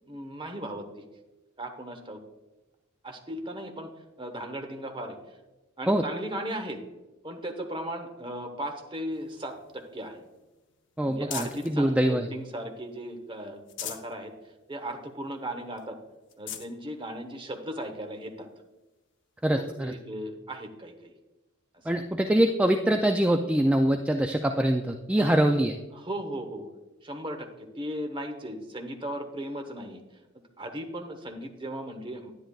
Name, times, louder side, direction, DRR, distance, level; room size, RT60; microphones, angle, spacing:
voice 1, 0.1-1.0 1.6-2.2 3.0-3.9 4.2-5.2 5.8-6.8 7.2-10.2 11.0-14.3 14.7-16.0 16.4-18.5 19.5-21.2 21.7-21.9 25.2-25.6 25.9-26.7 27.0-30.0 30.6-32.3, right 1 dB, 25° right, 5 dB, 1.0 m, -37 dB
sound 1, 9.1-11.8 12.3-13.1 13.5-14.2 14.6-14.7 15.1-15.2 15.8-15.9 16.2-16.7 17.5-17.6 19.4-19.5, left 9 dB, 60° left, 0.8 m, -42 dB
voice 2, 11.0-12.3 19.4-19.9 21.9-25.8, right 1 dB, 5° right, 4 dB, 0.3 m, -24 dB
10.0 x 10.0 x 2.4 m, 1.1 s
head